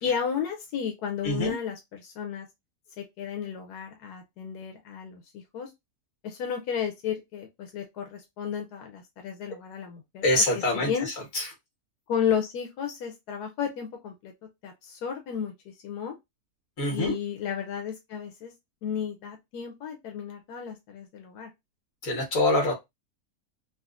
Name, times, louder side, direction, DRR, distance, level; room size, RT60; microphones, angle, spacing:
voice 1, 0.0-2.5 3.0-5.7 6.2-10.3 10.5-11.1 12.1-14.3 14.6-16.1 16.9-18.5 18.8-21.5, left 7 dB, 85° left, 1.2 m, -33 dB
voice 2, 1.2-1.5 9.5-9.6 10.2-11.5 16.8-17.1 22.0-22.7, left 1 dB, 60° left, 1.8 m, -25 dB
3.8 x 2.4 x 2.4 m
omnidirectional pair, 1.7 m